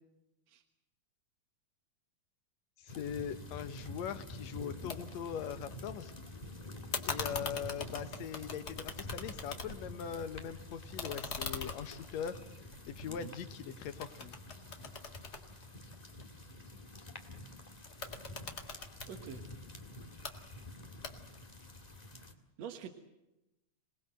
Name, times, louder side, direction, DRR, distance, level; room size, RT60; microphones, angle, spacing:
voice 1, 2.8-6.1 7.1-12.4 12.9-14.4, left 8 dB, 70° left, 10 dB, 2.3 m, -41 dB
sound 1, 2.9-22.3, left 1 dB, 15° left, 1.5 m, -48 dB
sound 2, 4.9-5.0 5.3-6.1 6.9-10.0 10.3-13.6 14.0-16.2 17.9-19.1 20.0-20.3 21.0-21.5, left 4 dB, 35° left, 2.1 m, -42 dB
voice 2, 19.1-19.5 22.6-22.9, right 8 dB, 65° right, 4 dB, 2.6 m, -45 dB
27.0 x 19.5 x 7.8 m, 0.94 s
omnidirectional pair, 3.4 m